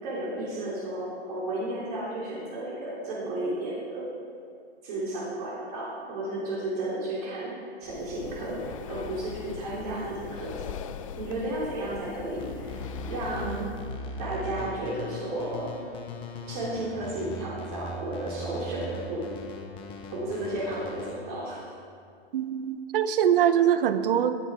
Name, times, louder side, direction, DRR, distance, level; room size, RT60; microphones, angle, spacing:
voice 1, 0.0-4.1 4.8-7.5 7.8-10.7 11.2-13.7 14.2-15.8 16.5-19.3 20.1-21.6, right 1 dB, 35° right, -6 dB, 3.2 m, -33 dB
Breathing, 7.8-14.0, left 9 dB, 30° left, 0.5 m, -41 dB
sound 1, 12.4-21.1, left 1 dB, 15° left, 1.1 m, -39 dB
voice 2, 22.3-24.4, right 9 dB, 55° right, 12 dB, 0.9 m, -23 dB
19.5 x 10.0 x 4.9 m, 2.5 s
hypercardioid pair, 155°, 34 cm